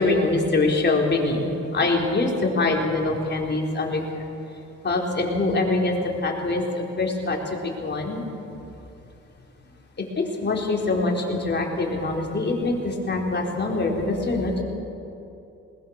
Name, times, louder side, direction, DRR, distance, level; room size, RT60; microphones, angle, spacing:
voice 1, 0.0-4.0 4.8-5.9 6.2-7.4 7.8-8.2 10.0-14.6, left 2 dB, 35° left, -1 dB, 4.2 m, -24 dB
20.5 x 20.0 x 6.5 m, 2.8 s
cardioid pair, 90°, 30 cm